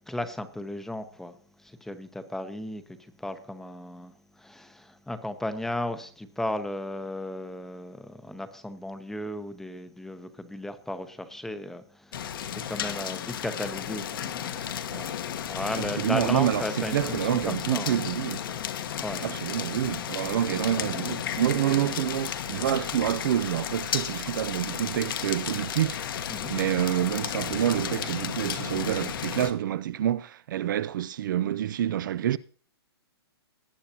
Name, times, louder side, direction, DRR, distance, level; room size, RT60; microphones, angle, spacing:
voice 1, 0.1-14.6 14.9-15.2 15.5-18.0 19.0-19.4 20.2-20.3 26.3-26.6, left 1 dB, 5° left, 0.7 m, -35 dB
sound 1, 12.1-29.5, left 9 dB, 55° left, 1.3 m, -33 dB
voice 2, 16.0-18.4 19.2-32.4, right 11 dB, 50° right, 0.4 m, -27 dB
18.5 x 8.6 x 2.9 m
hypercardioid pair, 150°, 13 cm